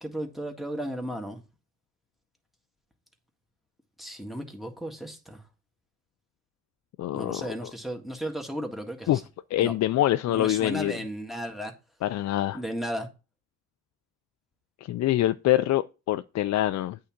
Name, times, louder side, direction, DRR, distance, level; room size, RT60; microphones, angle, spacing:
voice 1, 0.0-1.4 4.0-5.4 7.1-9.2 9.6-9.7 10.3-11.7 12.5-13.1, equal, ahead, 1.8 m, -34 dB
voice 2, 7.0-7.5 9.1-9.2 9.5-11.0 12.0-12.6 14.8-17.0, left 14 dB, 60° left, 0.5 m, -25 dB
8.5 x 3.7 x 5.9 m
cardioid pair, 90°, 30 cm